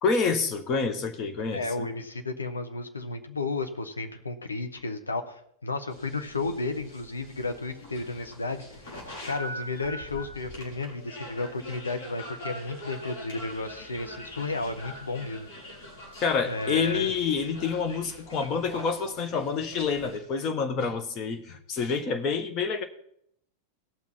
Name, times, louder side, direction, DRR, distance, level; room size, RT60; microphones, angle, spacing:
voice 1, 0.0-1.9 16.2-22.8, left 5 dB, 35° left, 7 dB, 1.4 m, -28 dB
voice 2, 1.5-8.6 9.2-15.5 16.5-17.1 18.3-18.5, left 3 dB, 75° left, 6 dB, 1.2 m, -33 dB
sound 1, 5.9-20.2, equal, 50° left, 3.8 m, -43 dB
17.5 x 6.0 x 4.4 m, 0.71 s
figure-of-eight pair, 90°, 0 cm